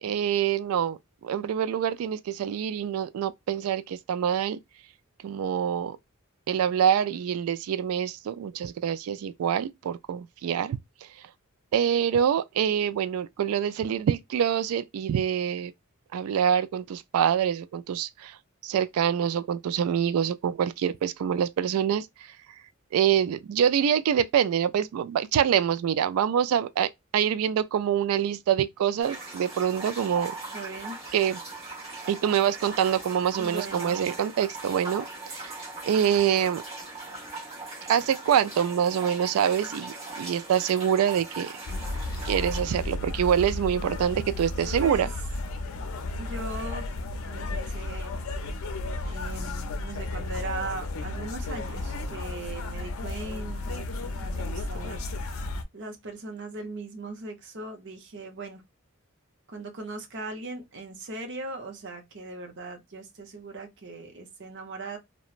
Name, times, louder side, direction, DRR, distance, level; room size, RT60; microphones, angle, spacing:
voice 1, 0.0-4.6 5.2-6.0 6.5-11.1 11.7-15.7 16.1-18.4 18.6-22.3 22.9-30.3 31.1-31.4 32.1-35.5 35.8-36.6 37.9-41.6 42.3-45.1, right 9 dB, 80° right, 0.3 m, -25 dB
sound 1, 29.0-42.6, right 2 dB, 30° right, 1.2 m, -40 dB
voice 2, 30.5-31.0 33.4-34.0 44.8-45.1 46.2-46.9 47.2-48.2 49.0-55.1 55.7-58.6 59.5-65.0, right 2 dB, 55° right, 0.7 m, -39 dB
sound 2, 41.7-55.6, left 2 dB, 70° left, 0.5 m, -33 dB
2.9 x 2.1 x 2.4 m
head